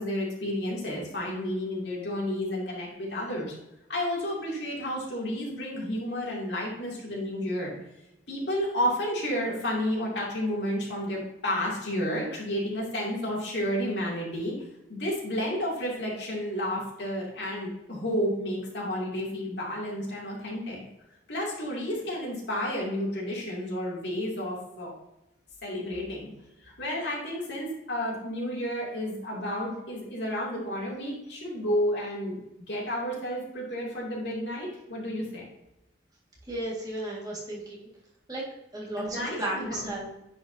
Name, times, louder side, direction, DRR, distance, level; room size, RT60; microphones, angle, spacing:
voice 1, 0.0-3.5 3.9-7.7 8.3-14.5 14.9-20.8 21.3-24.9 25.6-26.3 26.6-32.4 32.7-35.4 39.0-40.0, equal, 70° left, -3 dB, 2.6 m, -31 dB
voice 2, 36.5-37.9 38.3-38.4 38.7-40.1, right 1 dB, 20° right, -4 dB, 1.8 m, -34 dB
9.9 x 5.1 x 2.7 m, 0.89 s
head